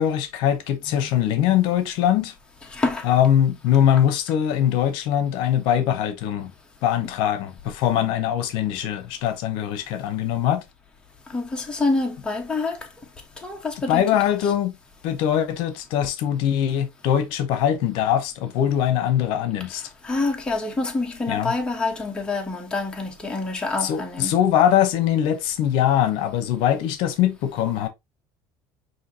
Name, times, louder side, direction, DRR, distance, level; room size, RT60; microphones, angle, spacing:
voice 1, 0.0-2.3 3.1-6.5 6.8-10.6 13.9-14.7 15.0-19.8 21.3-21.5 23.8-27.9, left 10 dB, 70° left, 0.8 m, -22 dB
voice 2, 0.9-1.6 2.7-3.1 11.3-12.8 13.4-14.5 20.0-24.3, left 3 dB, 10° left, 1.1 m, -27 dB
5.7 x 2.8 x 2.7 m
cardioid pair, 135°, 9 cm